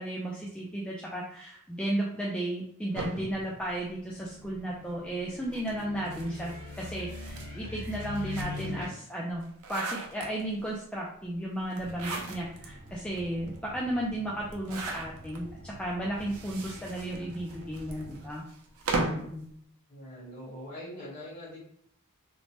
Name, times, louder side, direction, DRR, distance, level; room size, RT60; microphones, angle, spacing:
voice 1, 0.0-7.3 7.5-18.4 18.9-19.4, right 1 dB, 5° left, -5 dB, 0.3 m, -34 dB
sound 1, 2.9-4.5 5.4-8.9 9.3-10.7 11.7-12.7 13.2-13.3 13.5-13.6 14.5-15.4 16.1-19.3, right 3 dB, 70° right, 0.5 m, -38 dB
sound 2, 3.9-8.8, left 3 dB, 60° left, 1.3 m, -41 dB
sound 3, 11.8-18.3, right 1 dB, 50° right, 1.2 m, -49 dB
voice 2, 19.9-21.6, equal, 35° left, -7 dB, 1.4 m, -43 dB
2.9 x 2.1 x 2.9 m, 0.68 s
head